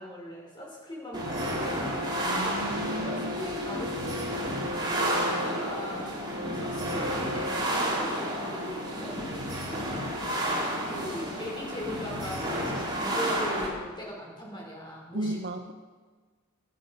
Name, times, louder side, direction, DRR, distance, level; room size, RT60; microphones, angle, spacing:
voice 1, 0.0-2.1 3.0-4.9 5.3-9.6 10.8-15.4, equal, 20° left, -3 dB, 5.5 m, -40 dB
sound 1, 1.1-13.7, equal, 20° right, 3.5 m, -31 dB
voice 2, 2.2-3.4 15.1-15.7, right 1 dB, 55° right, 7 dB, 1.0 m, -34 dB
22.5 x 8.1 x 6.5 m, 1.4 s
head